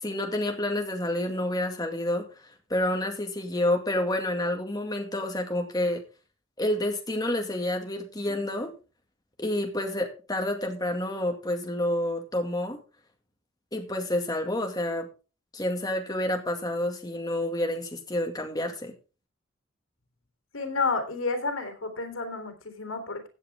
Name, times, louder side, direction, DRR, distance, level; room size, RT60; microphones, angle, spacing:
voice 1, 0.0-2.3 2.7-6.0 6.6-8.7 9.4-12.8 13.7-15.1 15.5-18.9, left 1 dB, 20° left, 3 dB, 2.2 m, -29 dB
voice 2, 20.5-23.3, left 3 dB, 90° left, 7 dB, 3.5 m, -30 dB
16.0 x 8.4 x 3.6 m, 0.33 s
head